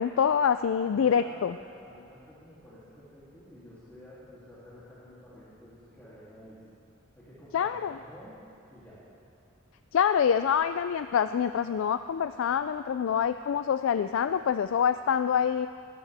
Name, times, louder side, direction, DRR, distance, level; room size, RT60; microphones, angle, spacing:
voice 1, 0.0-1.5 7.5-8.0 9.9-15.7, left 7 dB, 75° left, 11 dB, 0.3 m, -26 dB
voice 2, 0.9-6.7 7.1-8.4 8.7-9.0, equal, 10° left, -13 dB, 2.9 m, -50 dB
21.0 x 13.0 x 3.5 m, 2.7 s
head